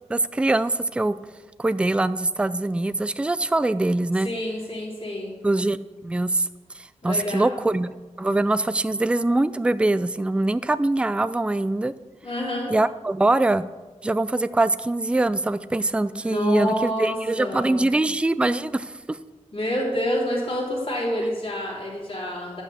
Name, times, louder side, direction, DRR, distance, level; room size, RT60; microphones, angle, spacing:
voice 1, 0.1-1.2 1.6-4.3 5.4-5.8 6.0-6.5 6.8-7.9 8.2-11.9 12.7-13.6 14.0-19.2, right 2 dB, 10° right, 14 dB, 0.3 m, -23 dB
voice 2, 4.2-5.3 7.0-7.6 12.2-12.7 16.1-17.9 19.5-22.6, left 1 dB, 45° left, -5 dB, 2.9 m, -28 dB
10.5 x 5.8 x 6.9 m, 1.3 s
wide cardioid pair, 115°, 12 cm